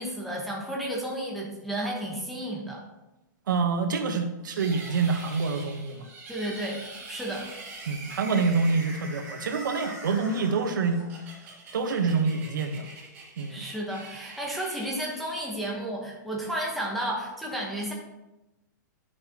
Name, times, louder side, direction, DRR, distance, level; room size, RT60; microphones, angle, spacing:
voice 1, 0.0-2.8 6.3-6.8 7.1-7.5 13.5-17.9, right 1 dB, ahead, -3 dB, 1.1 m, -32 dB
voice 2, 3.5-6.1 7.9-11.0 11.7-12.9 13.4-13.6, right 4 dB, 85° right, 7 dB, 1.1 m, -26 dB
sound 1, 4.5-15.8, right 2 dB, 20° right, 1.9 m, -43 dB
9.9 x 6.5 x 2.9 m, 0.99 s
hypercardioid pair, 170°, 10 cm